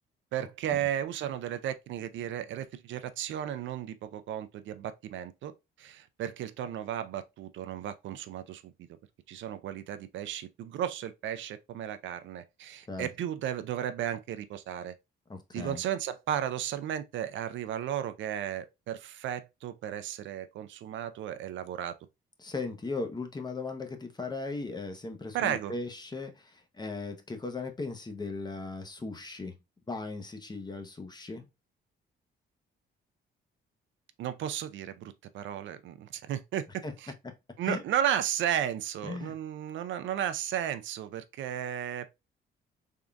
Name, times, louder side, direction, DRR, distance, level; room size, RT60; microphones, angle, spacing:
voice 1, 0.3-5.5 5.8-8.7 9.3-15.0 15.5-21.9 25.3-25.7 34.2-37.1 37.6-42.1, right 10 dB, 70° right, 0.4 m, -34 dB
voice 2, 15.3-15.8 22.4-29.5 29.9-31.5 36.8-36.9 37.2-37.3 37.6-37.8 39.0-39.3, left 3 dB, 20° left, 0.8 m, -37 dB
3.6 x 3.6 x 2.2 m
cardioid pair, 90°, 20 cm